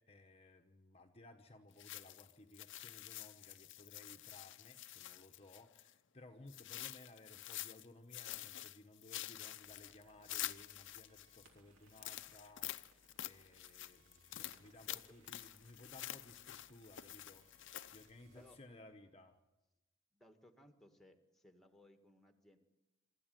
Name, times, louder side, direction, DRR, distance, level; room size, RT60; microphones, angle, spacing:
voice 1, 0.0-12.7 13.2-17.5 17.9-19.4, left 2 dB, 30° left, 5 dB, 1.1 m, -59 dB
sound 1, 1.8-5.9 6.5-7.9 8.1-11.4 11.9-18.1, left 14 dB, 60° left, 0.7 m, -48 dB
sound 2, 9.6-18.6, right 2 dB, 65° right, 3.1 m, -70 dB
voice 2, 20.1-22.6, left 1 dB, ahead, 6 dB, 1.7 m, -63 dB
25.0 x 13.5 x 9.2 m, 1.0 s
head